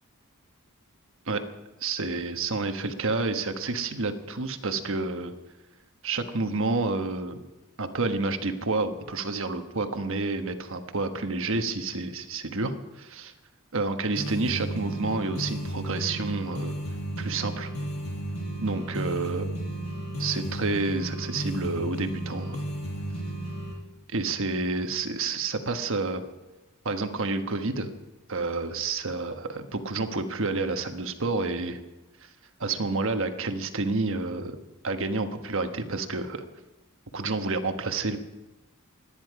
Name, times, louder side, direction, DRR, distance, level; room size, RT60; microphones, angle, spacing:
voice 1, 1.8-5.3 6.0-7.4 7.8-13.3 13.7-16.7 17.2-17.7 18.6-19.5 20.2-22.6 24.1-26.2 26.8-27.9 28.3-31.8 32.2-32.3 32.6-34.6 34.8-36.4 37.1-38.2, right 3 dB, 60° right, 7 dB, 1.3 m, -29 dB
sound 1, 14.2-23.7, right 1 dB, 75° left, 5.4 m, -33 dB
27.5 x 10.5 x 4.8 m, 1.1 s
head